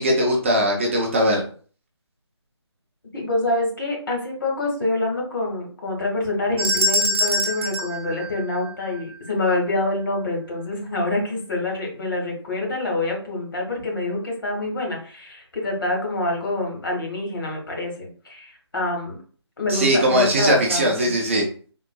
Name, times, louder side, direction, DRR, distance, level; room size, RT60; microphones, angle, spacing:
voice 1, 0.0-1.4 19.7-21.4, equal, 25° right, 0 dB, 0.6 m, -20 dB
voice 2, 3.1-19.2 19.6-21.1, left 2 dB, 50° left, -1 dB, 1.3 m, -26 dB
sound 1, 6.6-9.0, equal, 60° right, 1.0 m, -24 dB
3.7 x 2.4 x 2.3 m, 0.42 s
figure-of-eight pair, 155°, 15 cm